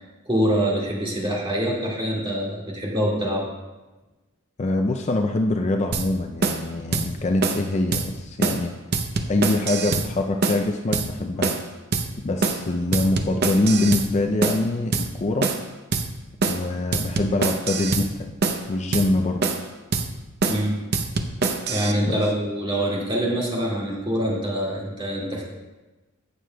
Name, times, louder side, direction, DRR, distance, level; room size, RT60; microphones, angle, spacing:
voice 1, 0.2-3.4 20.5-20.7 21.7-25.4, equal, 20° right, -4 dB, 2.0 m, -25 dB
voice 2, 4.6-8.7 9.3-11.6 12.2-15.6 16.5-18.4 18.7-19.4 22.0-22.2, left 2 dB, 30° left, 4 dB, 0.4 m, -24 dB
sound 1, 5.9-6.1 6.4-6.6 6.9-7.1 7.4-7.6 7.9-8.1 8.4-8.6 8.9-10.1 10.4-10.6 10.9-11.1 11.4-11.7 11.9-12.1 12.4-12.6 12.9-14.1 14.4-14.6 14.9-15.1 15.4-15.7 15.9-16.1 16.4-16.6 16.9-18.1 18.4-18.6 18.9-19.1 19.4-19.7 19.9-20.1 20.4-20.6 20.9-21.9, right 4 dB, 50° right, 0.7 m, -24 dB
16.5 x 6.5 x 2.3 m, 1.2 s
head